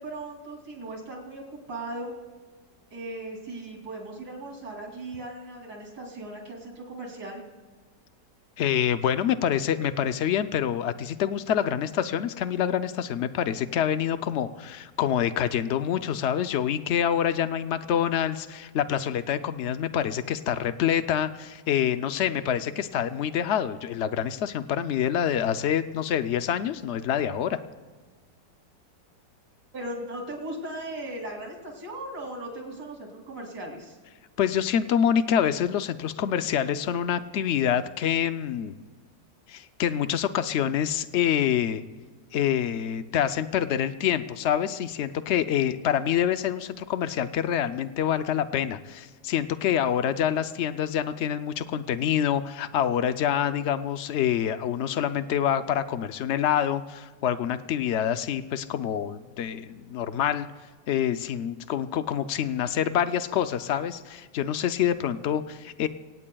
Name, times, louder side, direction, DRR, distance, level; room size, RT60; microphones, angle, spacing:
voice 1, 0.0-1.4 1.7-2.1 2.9-7.4 22.8-23.1 29.7-34.0, right 1 dB, 60° right, 0 dB, 3.5 m, -38 dB
voice 2, 8.6-27.6 34.4-38.7 39.5-41.8 42.3-60.5 60.9-65.9, left 9 dB, 80° left, 11 dB, 0.6 m, -26 dB
25.0 x 17.5 x 2.3 m, 1.4 s
omnidirectional pair, 1.9 m